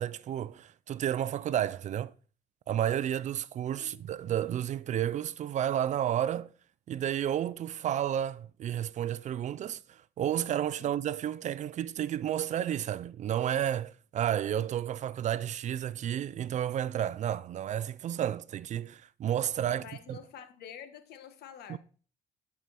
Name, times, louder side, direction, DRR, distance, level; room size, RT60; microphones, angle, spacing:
voice 1, 0.0-2.1 2.7-6.5 6.9-19.8 20.1-20.2 21.7-21.8, right 10 dB, 45° right, 0.4 m, -31 dB
voice 2, 19.7-21.8, left 8 dB, 75° left, 1.3 m, -47 dB
12.0 x 4.8 x 4.2 m
cardioid pair, 110°, 17 cm